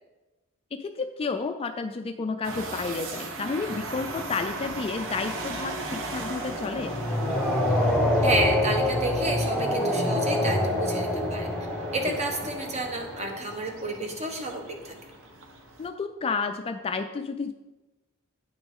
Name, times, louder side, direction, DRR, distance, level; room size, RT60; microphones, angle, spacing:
voice 1, 0.7-7.0 12.1-12.2 15.8-17.5, left 4 dB, 25° left, 8 dB, 0.3 m, -31 dB
sound 1, 2.4-15.9, right 3 dB, 60° right, 0.9 m, -39 dB
sound 2, 2.9-13.8, left 1 dB, 5° left, 1.0 m, -28 dB
voice 2, 8.2-11.5 11.9-14.9, right 2 dB, 30° right, 3 dB, 1.1 m, -30 dB
8.8 x 6.0 x 3.7 m, 1.1 s
head